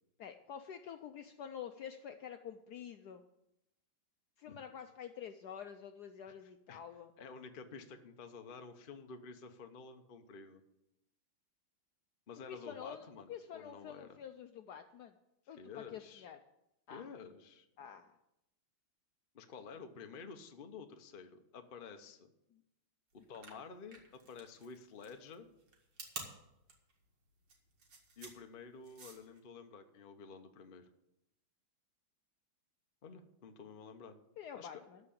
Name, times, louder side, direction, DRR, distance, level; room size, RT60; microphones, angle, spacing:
voice 1, 0.2-3.2 4.4-7.1 12.5-15.2 15.5-16.4 16.9-17.0 17.8-18.1 34.4-35.0, left 8 dB, 70° left, 7 dB, 1.0 m, -48 dB
voice 2, 7.2-10.6 12.3-14.2 15.6-16.3 16.9-17.7 19.3-22.3 23.1-25.5 28.2-30.9 33.0-34.1 34.5-34.8, left 5 dB, 50° left, 6 dB, 0.6 m, -51 dB
sound 1, 23.2-29.4, right 4 dB, 80° right, 2.7 m, -50 dB
13.0 x 4.8 x 8.5 m, 0.86 s
omnidirectional pair, 2.2 m